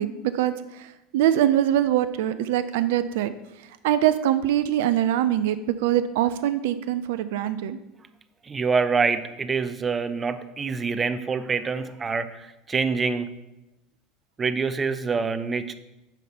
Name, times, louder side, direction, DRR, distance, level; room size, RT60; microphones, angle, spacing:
voice 1, 0.0-3.3 3.8-7.8, right 11 dB, 65° right, 13 dB, 0.4 m, -23 dB
voice 2, 8.4-13.3 14.4-15.7, right 5 dB, 25° right, 13 dB, 0.6 m, -26 dB
9.1 x 5.5 x 4.3 m, 0.96 s
hypercardioid pair, 75°, 0 cm